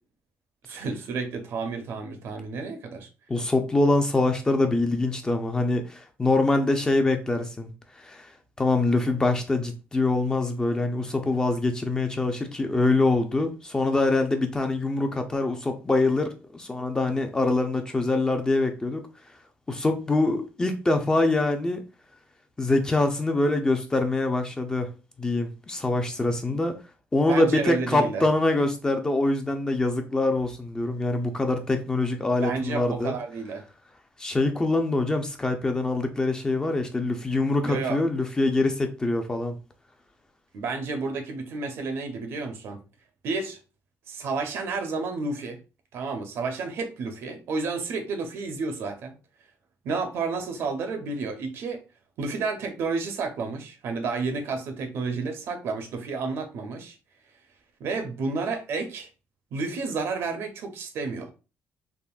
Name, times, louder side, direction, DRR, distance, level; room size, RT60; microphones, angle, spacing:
voice 1, 0.6-3.1 26.5-26.6 27.3-28.3 32.4-33.6 37.6-38.0 40.5-42.8 43.2-43.6 44.1-45.6 45.9-49.1 49.8-51.8 52.2-57.0 57.8-59.1 59.5-61.3, right 4 dB, 70° right, 0.7 m, -31 dB
voice 2, 3.3-7.7 8.0-8.3 8.6-19.1 19.7-21.8 22.6-24.9 25.2-26.8 27.1-33.1 34.2-39.6, left 2 dB, 15° left, 0.5 m, -24 dB
3.6 x 2.5 x 2.4 m
cardioid pair, 125°, 4 cm